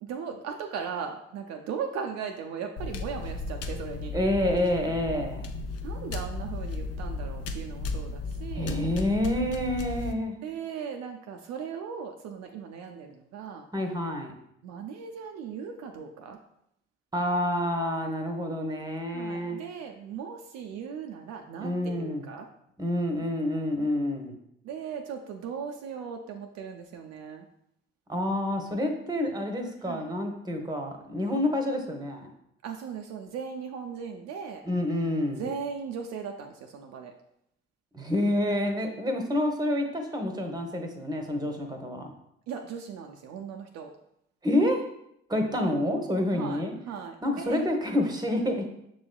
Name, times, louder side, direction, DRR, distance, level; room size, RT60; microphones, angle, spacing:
voice 1, 0.0-4.1 5.8-8.8 10.4-13.7 14.6-16.4 19.1-22.5 24.6-27.5 29.8-30.1 32.6-34.6 35.4-37.1 42.5-43.9 46.3-47.6, right 6 dB, 65° right, 4 dB, 0.5 m, -38 dB
sound 1, 2.8-10.1, left 3 dB, 55° left, 0.5 m, -35 dB
voice 2, 4.1-5.5 8.5-10.4 13.7-14.3 17.1-19.6 21.6-22.2 22.8-24.3 28.1-32.3 34.7-35.5 37.9-42.1 44.4-44.8 45.3-46.7 47.2-48.7, left 1 dB, 15° right, 4 dB, 0.9 m, -28 dB
6.1 x 3.0 x 2.2 m, 0.76 s
hypercardioid pair, 45°, 29 cm